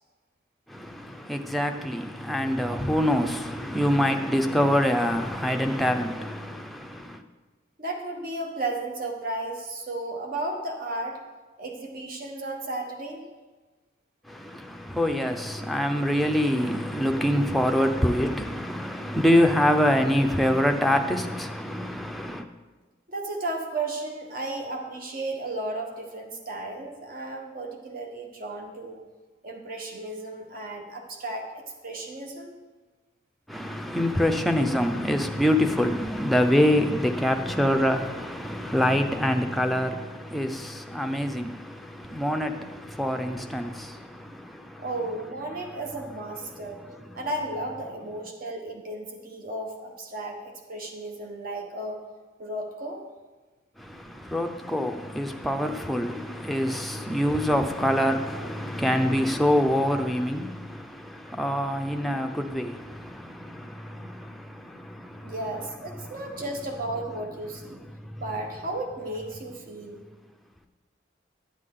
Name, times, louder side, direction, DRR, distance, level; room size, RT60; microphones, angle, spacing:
voice 1, 0.7-7.2 14.3-22.4 33.5-44.8 46.5-47.2 53.8-65.3 66.0-66.1 68.0-68.2, equal, ahead, 0.5 m, -25 dB
voice 2, 7.8-11.2 11.6-13.2 23.1-29.0 29.4-32.6 44.8-46.8 47.1-52.0 52.4-53.0 65.2-67.8 68.2-70.1, right 2 dB, 50° right, 1.2 m, -34 dB
12.0 x 8.1 x 3.8 m
head